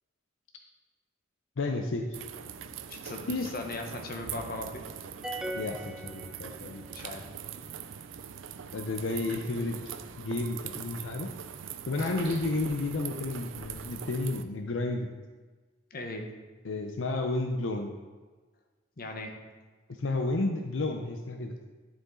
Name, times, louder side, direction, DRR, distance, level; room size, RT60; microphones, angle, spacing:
voice 1, 1.6-2.1 3.3-3.5 5.6-6.8 8.7-9.9 10.2-11.3 11.9-15.1 16.6-17.9 20.0-21.5, left 2 dB, 80° left, 3 dB, 0.6 m, -31 dB
sound 1, 2.1-14.4, right 8 dB, 80° right, 0.5 m, -42 dB
voice 2, 2.8-4.8 6.9-7.3 15.9-16.3 19.0-19.3, left 2 dB, 50° left, 3 dB, 1.0 m, -38 dB
sound 2, 5.2-7.0, right 1 dB, 5° right, 0.3 m, -39 dB
sound 3, 12.0-13.8, right 1 dB, 30° right, 2.4 m, -47 dB
11.5 x 5.1 x 3.8 m, 1.3 s
head